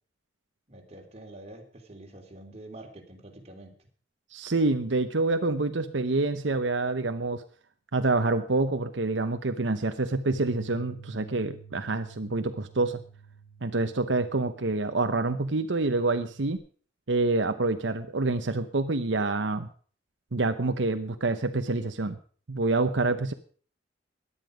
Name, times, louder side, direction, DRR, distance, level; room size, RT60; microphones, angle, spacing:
voice 1, 0.7-3.8, right 1 dB, 35° right, 2 dB, 3.2 m, -46 dB
voice 2, 4.3-7.4 7.9-13.0 13.6-16.6 17.1-19.7 20.3-22.2 22.5-23.3, right 3 dB, 85° right, 8 dB, 0.9 m, -27 dB
Bass guitar, 10.3-16.6, right 5 dB, 70° left, 7.5 m, -50 dB
17.5 x 11.5 x 5.0 m, 0.43 s
head